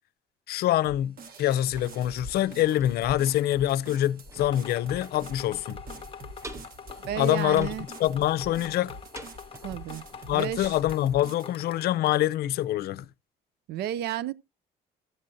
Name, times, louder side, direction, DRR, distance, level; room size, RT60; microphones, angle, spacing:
voice 1, 0.5-5.8 7.1-7.7 8.0-9.0 10.3-13.1, left 13 dB, 65° left, 0.5 m, -25 dB
sound 1, 0.8-11.6, right 2 dB, 60° right, 1.4 m, -47 dB
sound 2, 1.6-12.3 12.6-12.7, equal, 15° right, 0.7 m, -47 dB
sound 3, 4.4-12.3, left 7 dB, 30° left, 0.8 m, -45 dB
voice 2, 7.0-7.9 9.6-10.0 10.3-10.8 13.7-14.3, right 11 dB, 75° right, 0.5 m, -32 dB
14.0 x 7.6 x 2.6 m
cardioid pair, 110°, 17 cm